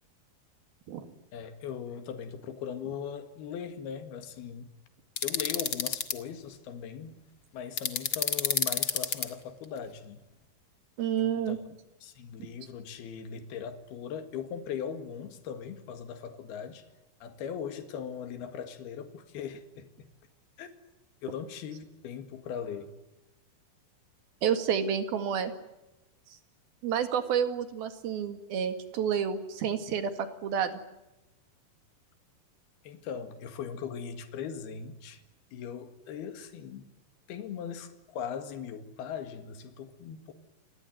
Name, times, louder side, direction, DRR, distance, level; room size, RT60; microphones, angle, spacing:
voice 1, 1.3-4.7 5.2-7.2 7.5-10.2 11.2-11.6 12.0-16.8 17.2-20.1 20.6-20.7 21.2-22.9 32.8-35.2 35.5-36.9 37.3-40.3, left 7 dB, 80° left, 8 dB, 3.8 m, -39 dB
sound 1, 5.2-6.1 7.8-9.3, left 7 dB, 45° left, 1.9 m, -28 dB
voice 2, 11.0-11.6 24.4-25.5 26.8-30.1 30.4-30.8, right 8 dB, 75° right, 8 dB, 3.9 m, -29 dB
28.0 x 20.5 x 9.3 m, 0.97 s
omnidirectional pair, 4.5 m